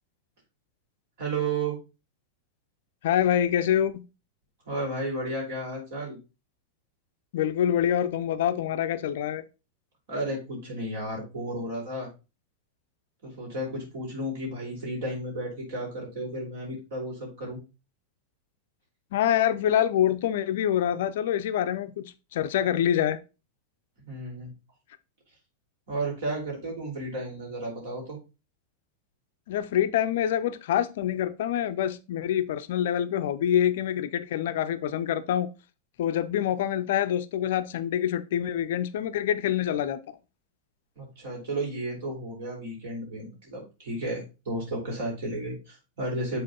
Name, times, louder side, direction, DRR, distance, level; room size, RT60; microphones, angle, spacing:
voice 1, 1.2-1.8 4.7-6.2 10.1-12.1 13.2-17.6 24.0-24.5 25.9-28.2 41.0-46.4, right 1 dB, 55° right, 4.0 m, -33 dB
voice 2, 3.0-4.0 7.3-9.4 19.1-23.2 29.5-35.5 36.0-40.0, left 10 dB, 55° left, 0.5 m, -26 dB
7.5 x 4.0 x 4.0 m
figure-of-eight pair, 90°, 0 cm